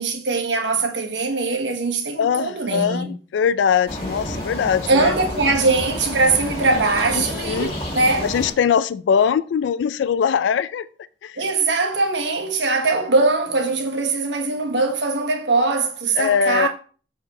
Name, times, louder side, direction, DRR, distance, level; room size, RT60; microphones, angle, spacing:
voice 1, 0.0-3.1 4.9-8.3 11.4-16.7, right 3 dB, 85° right, 1.2 m, -21 dB
voice 2, 2.2-5.1 7.2-7.7 8.2-10.9 11.2-11.4 16.2-16.7, left 7 dB, 85° left, 0.3 m, -21 dB
sound 1, 3.9-8.5, equal, 30° left, 1.6 m, -30 dB
7.1 x 4.4 x 3.6 m
head